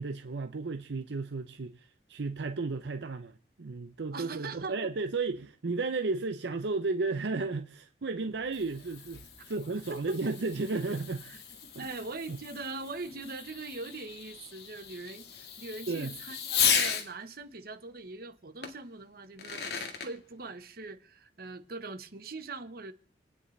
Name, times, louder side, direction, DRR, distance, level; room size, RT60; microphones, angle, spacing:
voice 1, 0.0-11.2 11.7-11.9 12.3-12.4 15.9-16.1, right 3 dB, 80° right, 0.7 m, -33 dB
voice 2, 4.1-4.9 9.9-10.3 11.2-11.4 11.8-22.9, right 3 dB, 60° right, 1.1 m, -42 dB
Fireworks, 8.2-17.1 18.6-18.7 19.2-20.1, left 7 dB, 65° left, 1.9 m, -35 dB
28.5 x 9.7 x 3.3 m
head